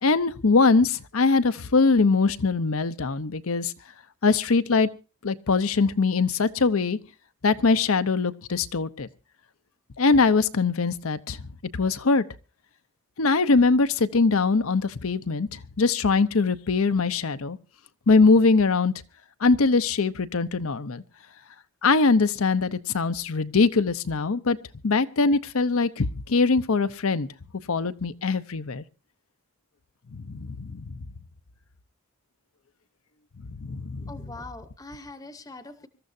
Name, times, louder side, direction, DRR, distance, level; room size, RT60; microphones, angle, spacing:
voice 1, 0.0-3.7 4.2-4.9 5.2-7.0 7.4-9.1 10.0-11.4 11.7-12.2 13.2-17.6 18.1-18.9 19.4-21.0 21.8-24.6 24.8-27.3 27.7-28.8 30.1-30.9 33.6-34.1, left 4 dB, 70° left, 0.7 m, -22 dB
voice 2, 34.0-35.9, left 2 dB, 15° left, 0.8 m, -42 dB
25.0 x 13.5 x 2.7 m
head